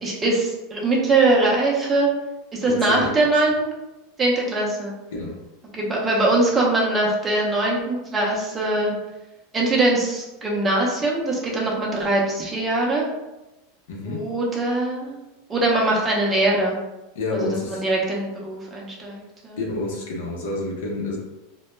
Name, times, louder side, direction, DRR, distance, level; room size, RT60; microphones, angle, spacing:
voice 1, 0.0-2.1 2.5-3.7 4.2-4.9 5.7-8.9 9.5-13.1 14.1-15.2 15.5-16.8 17.3-19.6, right 2 dB, 20° right, -3 dB, 0.6 m, -22 dB
voice 2, 2.6-3.3 5.1-5.4 13.9-14.3 17.1-17.8 19.6-21.2, left 2 dB, 80° left, -2 dB, 0.6 m, -29 dB
2.1 x 2.1 x 3.1 m, 1.0 s
supercardioid pair, 125°, 0 cm